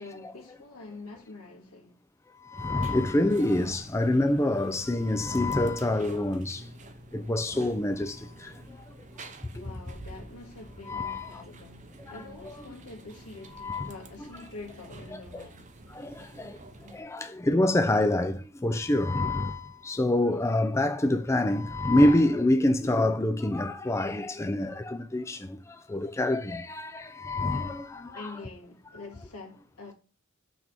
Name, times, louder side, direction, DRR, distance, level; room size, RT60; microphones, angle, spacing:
voice 1, 0.0-2.0 9.5-15.7 28.1-29.9, left 3 dB, 90° left, 1.9 m, -45 dB
voice 2, 2.4-6.7 7.1-8.8 10.9-11.4 12.5-12.6 13.6-13.9 15.1-15.4 15.9-28.3, left 1 dB, 15° left, 0.4 m, -26 dB
sound 1, 2.5-17.0, right 1 dB, 35° right, 0.7 m, -48 dB
6.1 x 3.4 x 5.9 m
head